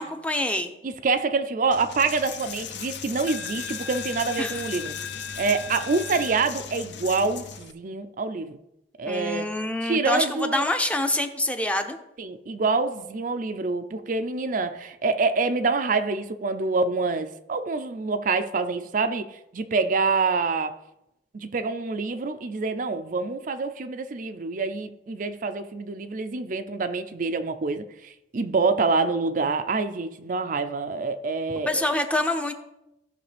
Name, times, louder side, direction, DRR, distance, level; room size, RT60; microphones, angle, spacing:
voice 1, 0.0-0.7 4.4-4.6 9.0-12.0 31.7-32.5, left 1 dB, 5° left, 0.6 m, -26 dB
voice 2, 0.8-4.9 5.4-8.6 9.0-9.5 9.8-10.7 12.2-20.7 21.3-31.8, right 4 dB, 45° right, 0.5 m, -26 dB
Coin (dropping), 1.7-7.7, left 7 dB, 70° left, 0.7 m, -36 dB
15.5 x 5.9 x 3.4 m
head